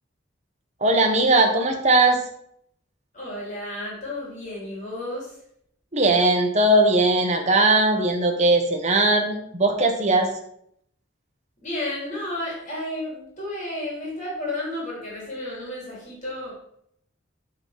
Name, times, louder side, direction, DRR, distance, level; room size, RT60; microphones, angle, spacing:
voice 1, 0.8-2.2 5.9-10.3, right 2 dB, 35° right, 4 dB, 1.2 m, -19 dB
voice 2, 3.1-5.4 11.6-16.5, left 1 dB, 40° left, -5 dB, 3.4 m, -32 dB
8.9 x 4.1 x 5.8 m, 0.72 s
head